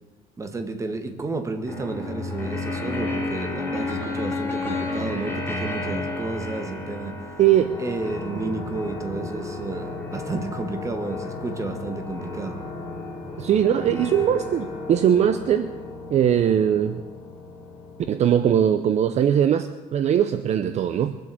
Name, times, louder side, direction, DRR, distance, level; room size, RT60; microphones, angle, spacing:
voice 1, 0.4-7.2 7.8-12.6, right 3 dB, 20° right, 6 dB, 1.6 m, -31 dB
sound 1, 1.7-18.2, left 2 dB, 15° left, 3.1 m, -32 dB
voice 2, 7.4-7.7 13.4-15.7 16.1-17.0 18.1-21.2, right 9 dB, 45° right, 10 dB, 0.7 m, -20 dB
22.5 x 7.9 x 7.8 m, 1.2 s
cardioid pair, 145°, 16 cm